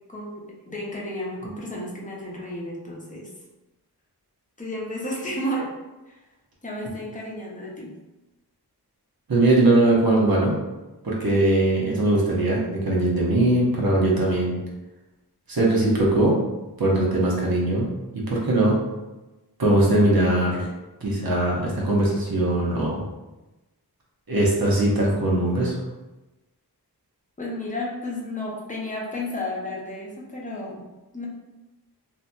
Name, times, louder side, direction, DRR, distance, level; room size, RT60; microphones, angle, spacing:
voice 1, 0.1-3.3 4.6-5.7 6.1-6.2 6.6-7.9 27.4-30.9 31.1-31.3, left 1 dB, 20° left, -4 dB, 0.7 m, -32 dB
voice 2, 9.3-10.5 11.0-14.6 15.5-16.4 16.8-17.9 18.1-18.8 19.6-20.7 21.0-23.0 24.3-25.8, right 1 dB, 65° right, -3 dB, 0.8 m, -20 dB
2.8 x 2.7 x 2.2 m, 1.1 s
wide cardioid pair, 45°, 39 cm